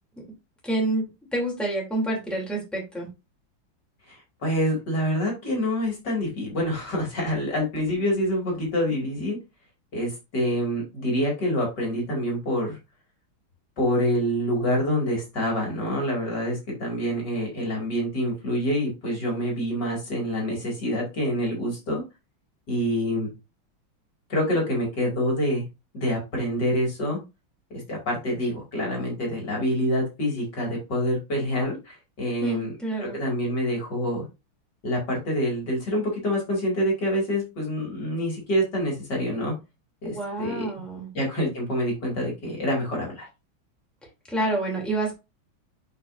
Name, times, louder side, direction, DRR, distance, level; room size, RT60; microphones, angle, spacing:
voice 1, 0.6-1.0 1.3-3.1 32.4-33.2 40.0-41.1 44.3-45.1, right 2 dB, ahead, 3.0 m, -28 dB
voice 2, 4.1-9.4 9.9-12.8 13.8-22.0 22.7-23.3 24.3-25.6 25.9-27.2 27.7-32.7 33.0-34.2 34.8-39.5 40.0-40.7 41.1-43.3, equal, 55° left, 3.1 m, -26 dB
8.6 x 5.2 x 2.7 m
omnidirectional pair, 2.2 m